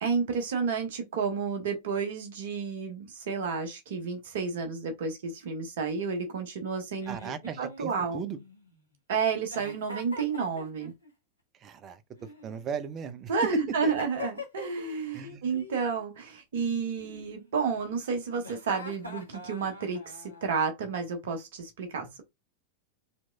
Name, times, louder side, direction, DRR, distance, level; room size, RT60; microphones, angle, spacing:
voice 1, 0.0-8.2 9.1-10.9 13.3-22.2, right 5 dB, 55° right, 1.0 m, -31 dB
Giggle, 7.0-8.8 9.5-11.1 12.2-13.1 13.8-15.0 15.2-15.8 17.0-17.8 18.4-20.5, left 2 dB, 85° left, 0.9 m, -44 dB
voice 2, 7.1-8.4 11.6-12.0 12.4-13.3 13.8-13.9 15.1-15.5, right 7 dB, 30° right, 0.5 m, -37 dB
4.1 x 3.0 x 2.2 m
figure-of-eight pair, 90°, 0 cm